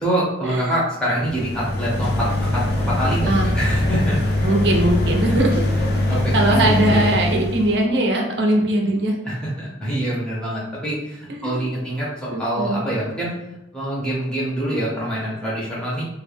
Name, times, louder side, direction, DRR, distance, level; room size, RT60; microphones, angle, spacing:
voice 1, 0.0-4.3 6.1-7.1 9.2-13.3 13.7-16.0, right 1 dB, 5° left, -7 dB, 0.6 m, -25 dB
sound 1, 1.1-7.8, left 1 dB, 55° left, 0.5 m, -22 dB
voice 2, 4.4-5.5 6.1-9.1 11.3-11.6 12.3-12.8, right 1 dB, 65° right, 1 dB, 0.5 m, -20 dB
2.3 x 2.1 x 3.2 m, 0.88 s
head